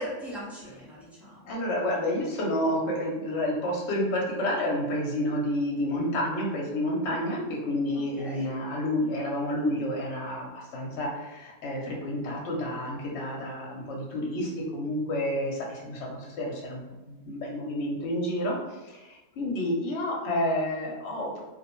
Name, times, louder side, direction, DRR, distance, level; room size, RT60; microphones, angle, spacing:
voice 1, 0.0-1.6 7.9-8.5, equal, ahead, -8 dB, 0.6 m, -39 dB
voice 2, 1.5-16.8 17.1-21.4, left 1 dB, 65° left, -1 dB, 0.9 m, -30 dB
2.5 x 2.0 x 2.9 m, 1.1 s
omnidirectional pair, 1.3 m